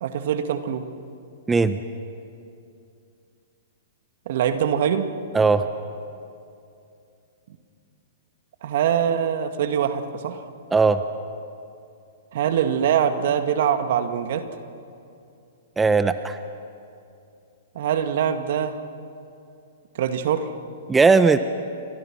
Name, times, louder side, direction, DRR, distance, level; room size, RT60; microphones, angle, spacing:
voice 1, 0.0-0.9 4.3-5.1 8.6-10.5 12.3-14.5 17.8-18.8 20.0-20.5, right 8 dB, 60° right, 8 dB, 2.0 m, -23 dB
voice 2, 1.5-1.8 5.3-5.7 10.7-11.0 15.8-16.4 20.9-21.4, right 4 dB, 10° right, 10 dB, 0.9 m, -18 dB
30.0 x 25.5 x 6.2 m, 2.5 s
hypercardioid pair, 115°, 0 cm